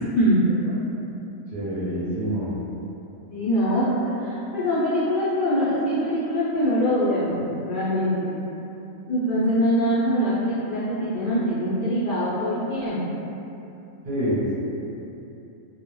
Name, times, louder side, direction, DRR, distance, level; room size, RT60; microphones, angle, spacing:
voice 1, 0.1-0.8 3.3-8.3 9.0-13.0, equal, 70° left, -11 dB, 0.5 m, -23 dB
voice 2, 1.5-2.5 14.0-14.6, equal, 55° right, -10 dB, 0.8 m, -26 dB
2.3 x 2.0 x 3.0 m, 2.9 s
omnidirectional pair, 1.4 m